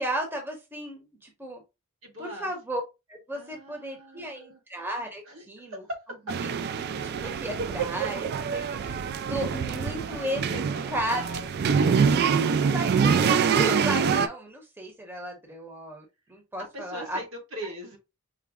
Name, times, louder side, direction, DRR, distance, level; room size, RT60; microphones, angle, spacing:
voice 1, 0.0-1.6 2.2-2.8 3.1-5.8 7.0-9.0 9.3-10.6 10.9-11.2 12.1-12.4 12.6-17.2 17.6-17.7, right 1 dB, 10° right, 1 dB, 0.8 m, -34 dB
voice 2, 2.0-2.5 3.3-4.6 5.3-5.4 5.7-5.8 10.5-12.1 16.7-18.0, equal, 65° right, 1 dB, 1.5 m, -41 dB
sound 1, 6.3-14.3, right 6 dB, 50° right, 0.3 m, -25 dB
4.9 x 2.1 x 3.5 m, 0.25 s
head